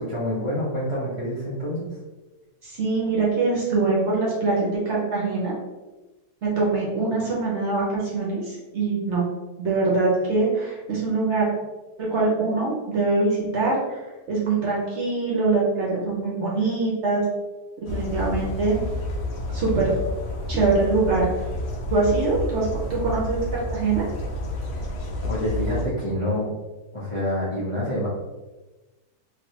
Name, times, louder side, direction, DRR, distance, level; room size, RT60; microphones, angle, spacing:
voice 1, 0.0-1.9 25.3-26.5 26.9-28.1, equal, 35° left, -8 dB, 0.5 m, -27 dB
voice 2, 2.6-5.5 6.4-9.2 9.6-11.5 12.0-14.0 14.3-17.2 17.8-18.8 19.5-19.9 20.5-21.3 21.9-24.0, right 3 dB, 55° right, -4 dB, 0.9 m, -23 dB
sound 1, 17.8-25.8, left 1 dB, 70° left, 1.0 m, -30 dB
3.2 x 2.6 x 2.8 m, 1.1 s
omnidirectional pair, 1.7 m